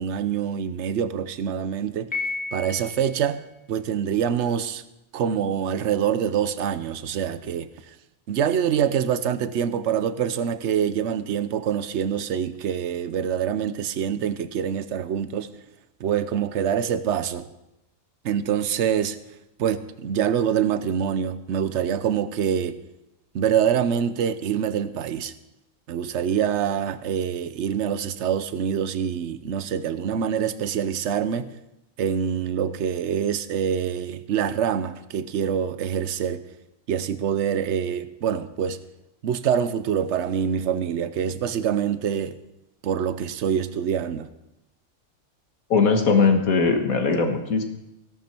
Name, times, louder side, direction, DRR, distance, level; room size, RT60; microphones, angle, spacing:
voice 1, 0.0-2.1 2.5-3.4 3.7-4.8 5.1-7.9 8.3-15.5 16.0-17.5 18.2-19.2 19.6-22.8 23.3-25.3 25.9-31.5 32.0-36.4 36.9-38.8 39.2-42.4 42.8-44.3, right 8 dB, 60° right, 1.0 m, -25 dB
Piano, 2.1-3.2, left 3 dB, 5° left, 1.8 m, -31 dB
voice 2, 45.7-47.6, left 4 dB, 80° left, 1.9 m, -20 dB
17.0 x 11.5 x 4.4 m
omnidirectional pair, 1.5 m